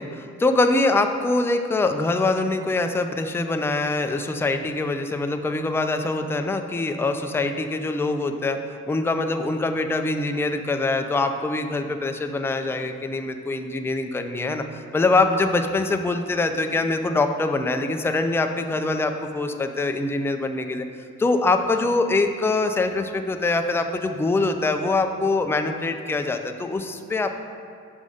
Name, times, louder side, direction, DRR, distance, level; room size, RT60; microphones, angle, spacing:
voice 1, 0.0-8.6 8.9-14.6 14.9-20.9 21.2-27.4, left 2 dB, 10° left, 6 dB, 0.4 m, -24 dB
5.4 x 5.2 x 4.9 m, 2.4 s
cardioid pair, 90°, 30 cm